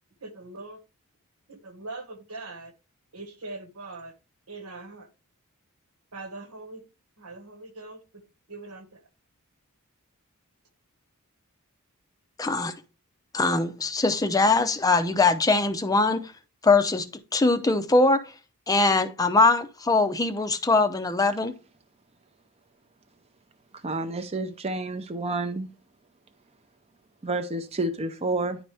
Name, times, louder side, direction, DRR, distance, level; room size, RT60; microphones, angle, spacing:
voice 1, 0.2-0.8 1.5-2.7 3.1-4.1 4.5-5.1 6.1-6.8 7.2-8.2 8.5-9.0, right 2 dB, 80° right, 1.5 m, -41 dB
voice 2, 12.4-12.7 13.3-16.2 16.6-17.0 17.3-18.2 18.7-21.5, left 3 dB, 15° left, 0.5 m, -22 dB
voice 3, 23.8-25.7 27.2-28.6, right 2 dB, 30° right, 0.6 m, -29 dB
10.0 x 4.1 x 3.4 m
head